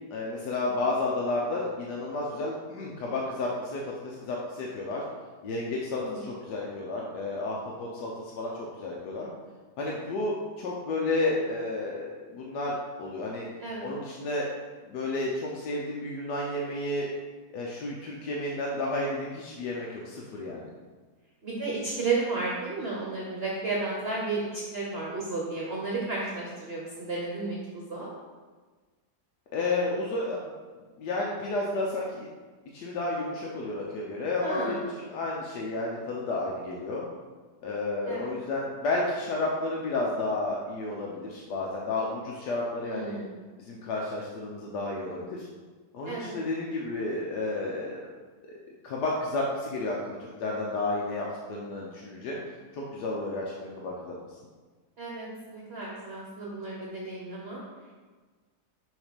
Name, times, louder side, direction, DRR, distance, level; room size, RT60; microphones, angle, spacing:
voice 1, 0.1-5.0 5.4-9.3 9.8-13.5 13.8-14.5 14.9-17.1 17.5-20.7 29.5-30.4 31.0-32.3 32.7-37.0 37.6-43.2 43.6-45.5 45.9-48.1 48.8-52.4 52.7-53.4 53.7-54.1, left 2 dB, 80° left, -3 dB, 1.3 m, -31 dB
voice 2, 5.8-6.2 13.6-13.9 21.4-28.1 34.4-34.9 38.0-38.3 42.8-43.3 46.1-46.4 55.0-57.6, right 3 dB, 45° right, -4 dB, 1.0 m, -33 dB
6.3 x 3.2 x 5.1 m, 1.4 s
omnidirectional pair, 1.8 m